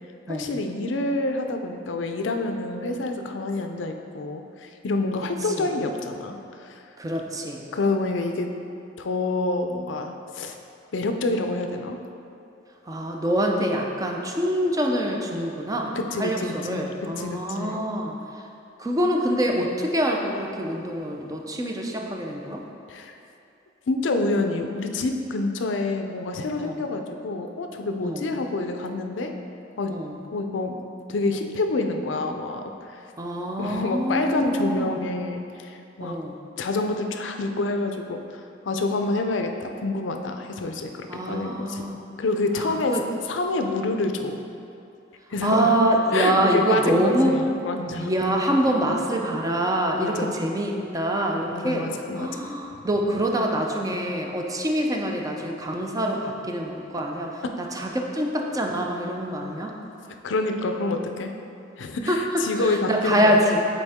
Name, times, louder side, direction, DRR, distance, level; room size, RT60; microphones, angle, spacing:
voice 1, 0.3-6.8 7.7-8.5 9.0-10.6 10.9-12.0 15.9-16.9 17.2-17.8 22.9-23.1 23.9-29.3 29.8-29.9 30.3-30.8 31.1-32.9 33.6-36.2 36.6-38.2 38.7-41.9 42.2-43.0 43.3-44.4 45.3-45.7 46.1-48.1 50.0-50.4 51.5-52.5 60.2-61.3 61.8-63.5, left 2 dB, 70° left, 5 dB, 0.5 m, -27 dB
voice 2, 7.0-7.6 12.9-18.4 18.8-22.6 26.6-26.8 28.0-28.3 29.9-30.2 33.2-35.0 36.0-36.4 41.1-42.0 42.6-43.0 45.4-47.4 48.0-51.9 52.2-59.7 62.1-63.6, right 1 dB, 20° right, 1 dB, 0.5 m, -25 dB
8.1 x 4.3 x 3.6 m, 2.6 s
head